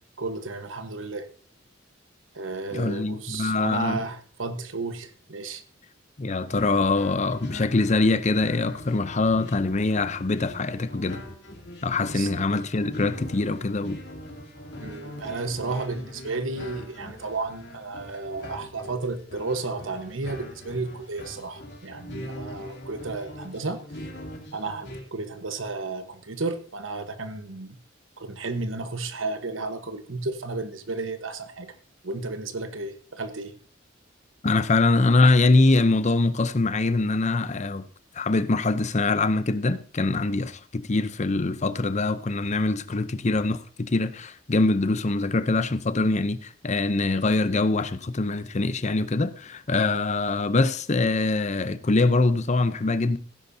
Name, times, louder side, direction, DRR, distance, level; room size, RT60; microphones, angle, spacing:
voice 1, 0.2-1.3 2.3-5.6 12.1-12.3 14.8-23.8 24.5-27.8 28.2-31.7 32.0-33.5, right 3 dB, 85° right, 1.2 m, -33 dB
voice 2, 2.7-4.0 6.2-11.2 11.8-14.0 34.4-37.9 38.1-53.2, left 3 dB, 35° left, 0.7 m, -23 dB
sound 1, 6.5-25.0, left 1 dB, 60° left, 2.8 m, -42 dB
16.5 x 10.5 x 2.8 m
head